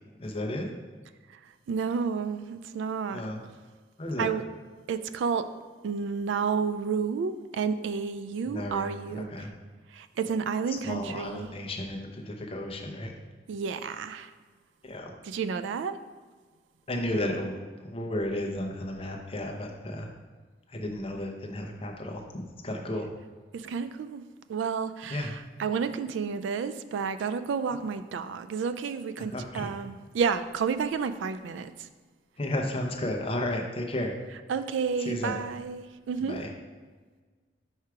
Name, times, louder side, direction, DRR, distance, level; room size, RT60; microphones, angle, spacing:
voice 1, 0.2-0.7 3.1-3.4 4.0-4.3 8.5-8.9 9.1-9.5 10.8-13.1 14.8-15.1 16.9-17.5 17.8-20.1 20.7-22.2 22.6-23.1 25.1-25.4 29.3-29.7 32.4-34.1 35.0-35.4 36.3-36.5, left 1 dB, 30° left, 2 dB, 0.7 m, -33 dB
voice 2, 1.7-3.2 4.2-4.4 4.9-5.5 5.8-9.5 9.9-11.5 13.5-14.3 15.2-16.0 23.5-24.2 24.5-31.9 34.5-36.4, right 6 dB, 85° right, 12 dB, 0.3 m, -31 dB
4.7 x 4.5 x 4.8 m, 1.4 s
head